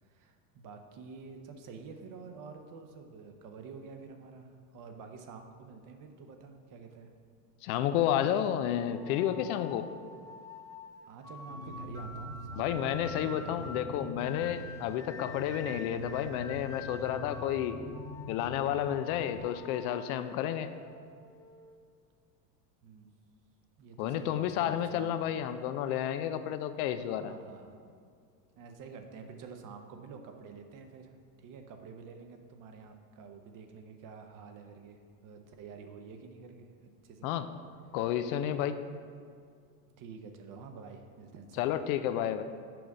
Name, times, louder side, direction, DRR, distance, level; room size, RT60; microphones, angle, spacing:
voice 1, 0.0-7.1 11.0-14.1 22.8-23.1 23.8-25.2 27.2-27.8 28.6-36.7 37.0-37.4 40.0-41.8, right 5 dB, 40° right, 5 dB, 0.8 m, -48 dB
voice 2, 7.6-9.9 12.6-17.8 18.3-20.7 24.0-27.3 37.2-37.5 37.9-38.8 41.6-42.4, left 10 dB, 60° left, 11 dB, 0.5 m, -31 dB
sound 1, 8.9-21.7, left 3 dB, 10° left, 0.4 m, -48 dB
sound 2, 11.4-19.4, left 2 dB, 30° left, 0.7 m, -45 dB
6.1 x 5.1 x 4.8 m, 2.2 s
supercardioid pair, 110°, 50 cm